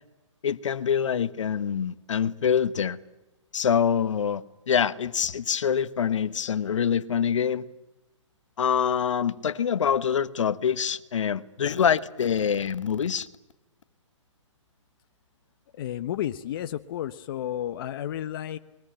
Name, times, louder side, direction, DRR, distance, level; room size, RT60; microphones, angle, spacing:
voice 1, 0.4-3.0 3.5-7.6 8.6-13.3, left 7 dB, 70° left, 1.2 m, -25 dB
voice 2, 15.7-18.6, left 11 dB, 45° left, 0.9 m, -32 dB
22.0 x 20.5 x 9.0 m
hypercardioid pair, 140°, 16 cm